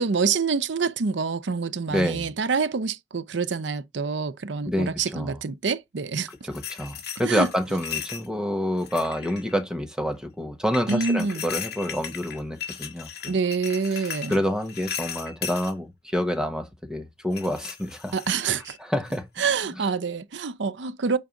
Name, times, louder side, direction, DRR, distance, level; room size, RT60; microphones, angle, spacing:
voice 1, 0.0-6.3 7.2-7.5 10.9-11.4 13.3-14.4 18.1-18.8 19.4-21.2, right 5 dB, 70° right, 0.6 m, -26 dB
voice 2, 1.9-2.3 4.6-5.4 6.4-13.1 13.9-18.2 18.5-19.2 19.8-19.9, equal, 5° right, 1.2 m, -28 dB
sound 1, 6.2-8.3 8.8-9.5 10.7-15.7 17.3-18.8 19.1-19.4, left 8 dB, 60° left, 2.1 m, -36 dB
7.1 x 4.7 x 3.8 m
head